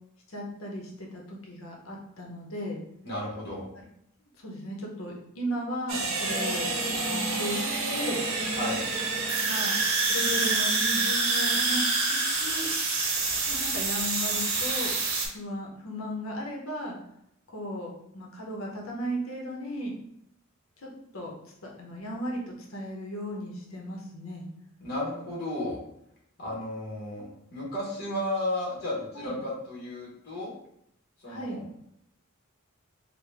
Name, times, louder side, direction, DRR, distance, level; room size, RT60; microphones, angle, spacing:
voice 1, 0.3-2.8 3.7-3.8 4.4-6.7 7.0-8.2 9.4-9.8 10.1-12.7 13.5-14.9 15.2-17.0 17.5-19.9 20.8-21.3 21.6-24.5 29.1-29.4 31.3-31.6, equal, 75° left, -1 dB, 0.9 m, -36 dB
voice 2, 3.0-3.7 8.5-8.8 24.8-25.8 26.4-30.5 31.2-31.6, left 1 dB, 50° left, -4 dB, 1.2 m, -33 dB
sound 1, 5.9-15.3, right 3 dB, 85° right, 0.8 m, -27 dB
3.8 x 2.2 x 3.3 m, 0.74 s
head